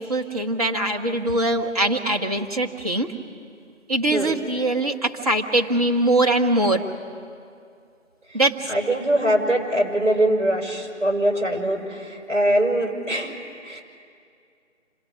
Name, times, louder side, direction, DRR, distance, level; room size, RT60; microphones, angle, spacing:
voice 1, 0.0-3.1 3.9-6.9 8.3-8.7, right 1 dB, 30° right, 3 dB, 1.3 m, -22 dB
voice 2, 8.7-13.3 13.6-13.8, right 1 dB, 85° right, -1 dB, 5.6 m, -22 dB
26.5 x 18.5 x 6.2 m, 2.4 s
figure-of-eight pair, 160°, 37 cm